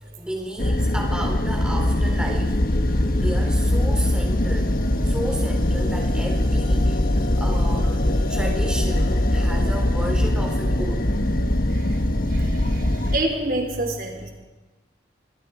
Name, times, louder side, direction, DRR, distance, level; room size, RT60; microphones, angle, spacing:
voice 1, 0.0-2.6 3.1-4.7 5.0-11.1, right 1 dB, 5° right, 1 dB, 3.9 m, -33 dB
sound 1, 0.6-13.2, left 1 dB, 50° left, 1.3 m, -21 dB
voice 2, 11.7-14.3, right 1 dB, 50° right, 2 dB, 4.1 m, -28 dB
27.0 x 22.0 x 5.0 m, 1.2 s
head